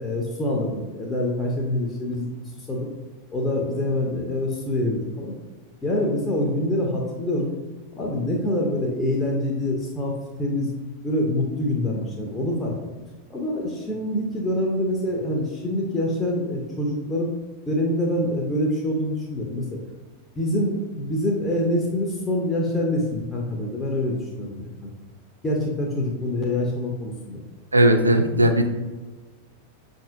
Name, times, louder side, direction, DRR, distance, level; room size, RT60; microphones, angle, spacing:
voice 1, 0.0-2.3 2.6-2.9 3.3-5.3 5.8-7.5 7.9-10.1 10.4-10.7 11.0-12.8 13.3-17.3 17.7-19.8 20.4-24.9 25.4-27.4, left 1 dB, 15° left, -2 dB, 0.6 m, -25 dB
voice 2, 27.7-28.6, right 1 dB, 80° right, 6 dB, 0.3 m, -17 dB
5.4 x 2.6 x 2.4 m, 1.3 s
figure-of-eight pair, 90°, 0 cm